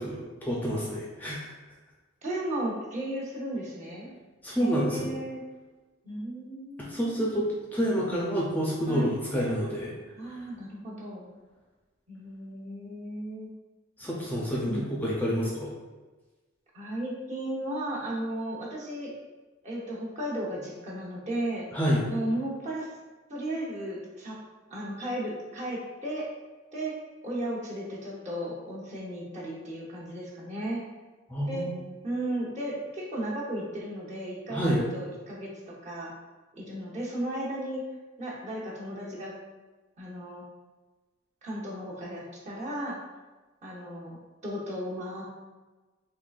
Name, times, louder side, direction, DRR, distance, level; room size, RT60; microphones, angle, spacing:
voice 1, 0.0-1.5 4.4-5.1 6.8-9.9 14.0-15.7 21.7-22.1 31.3-31.8 34.5-34.8, equal, 10° left, -5 dB, 0.5 m, -28 dB
voice 2, 2.2-4.2 4.6-5.4 6.0-7.4 8.9-9.1 10.2-11.3 12.1-13.5 14.6-14.9 16.7-19.1 19.6-21.7 22.1-22.9 23.3-24.4 24.7-26.3 26.7-26.9 27.2-30.8 31.5-31.7 32.0-36.1 36.5-37.8 38.2-39.3 40.0-40.4 41.4-43.0 43.6-45.4, right 1 dB, 35° right, -5 dB, 0.9 m, -35 dB
3.8 x 3.2 x 2.4 m, 1.2 s
head